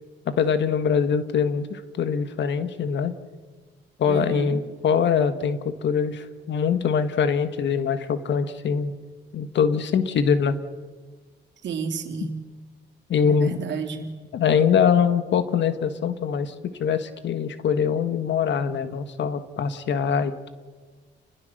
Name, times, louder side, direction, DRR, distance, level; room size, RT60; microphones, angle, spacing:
voice 1, 0.2-3.1 4.0-8.9 9.3-10.6 13.1-13.6 14.3-20.5, left 7 dB, 65° left, 11 dB, 1.6 m, -23 dB
voice 2, 4.0-4.6 11.6-12.4 13.3-14.2, right 5 dB, 65° right, 4 dB, 3.5 m, -31 dB
29.5 x 21.0 x 6.6 m, 1.5 s
cardioid pair, 90°, 20 cm